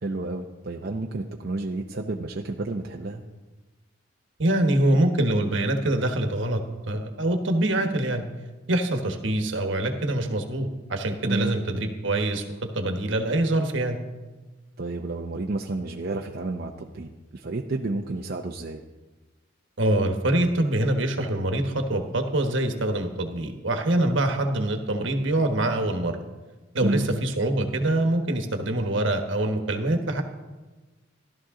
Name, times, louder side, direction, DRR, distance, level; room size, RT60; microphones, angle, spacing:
voice 1, 0.0-3.2 11.2-11.6 14.8-18.8 26.8-27.1, right 2 dB, 50° right, 2 dB, 0.6 m, -30 dB
voice 2, 4.4-6.6 6.9-8.2 8.7-12.4 12.7-14.0 19.8-26.2 26.7-30.2, right 1 dB, 70° right, 5 dB, 1.3 m, -24 dB
14.5 x 12.5 x 3.8 m, 1.2 s
head